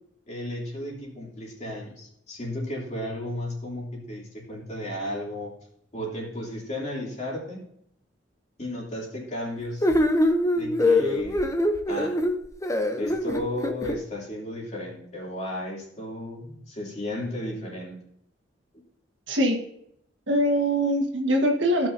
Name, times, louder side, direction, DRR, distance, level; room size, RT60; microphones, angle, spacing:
voice 1, 0.3-5.5 5.9-7.7 8.6-9.9 10.5-11.4 11.9-12.2 12.8-18.0, left 1 dB, 40° left, -3 dB, 3.0 m, -34 dB
sound 1, 9.8-14.0, left 1 dB, 15° left, 0.7 m, -23 dB
voice 2, 19.3-19.6 20.3-21.9, equal, 80° right, 3 dB, 1.6 m, -22 dB
16.0 x 6.3 x 2.7 m, 0.73 s
head